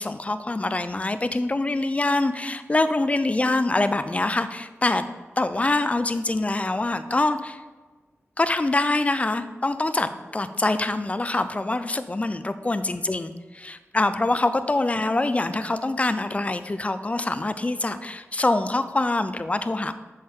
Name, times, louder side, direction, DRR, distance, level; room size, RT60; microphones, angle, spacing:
voice 1, 0.0-5.1 5.4-7.6 8.4-19.9, left 2 dB, 30° left, 11 dB, 0.5 m, -25 dB
8.7 x 6.4 x 3.8 m, 1.3 s
wide cardioid pair, 85°, 5 cm